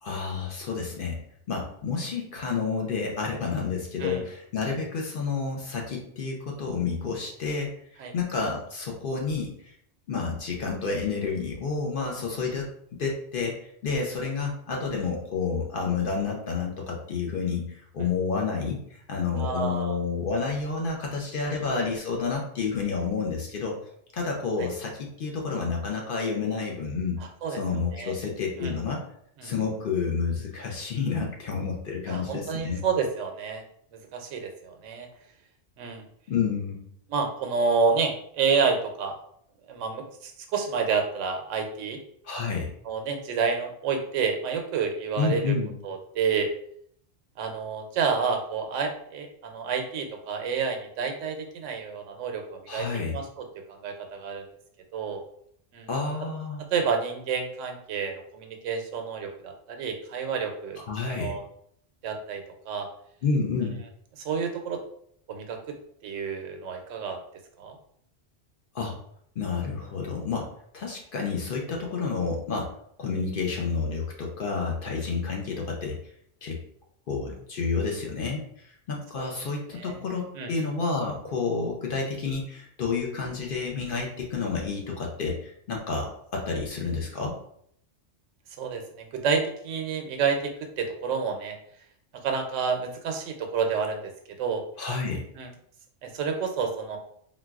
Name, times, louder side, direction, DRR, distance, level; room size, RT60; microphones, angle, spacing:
voice 1, 0.0-1.2 1.5-7.7 8.1-9.8 10.1-12.7 13.0-23.8 24.1-27.2 27.5-29.0 29.4-32.8 36.3-36.9 42.2-42.7 45.2-45.7 52.7-53.1 55.9-56.6 60.9-61.4 63.2-63.8 68.7-68.9 69.4-70.5 70.7-72.7 73.0-76.0 76.4-76.6 77.1-87.4 94.8-95.2, left 5 dB, 60° left, 0 dB, 0.6 m, -30 dB
voice 2, 19.4-20.0 21.4-21.6 24.6-24.7 27.4-27.6 27.9-28.1 28.6-28.7 29.4-29.5 32.1-33.6 33.9-35.1 35.8-36.0 37.1-39.2 39.7-42.0 42.8-45.6 45.8-46.5 47.4-54.4 54.9-55.2 55.7-55.9 56.7-61.4 62.0-62.9 64.2-64.8 65.3-65.6 66.0-67.2 67.6-67.8 75.0-75.1 79.1-79.3 79.7-80.0 80.3-80.5 88.6-91.6 92.2-94.1 94.4-94.6 95.3-95.5 96.0-97.0, right 5 dB, 90° right, 4 dB, 0.9 m, -29 dB
3.8 x 2.2 x 2.3 m, 0.68 s
omnidirectional pair, 1.2 m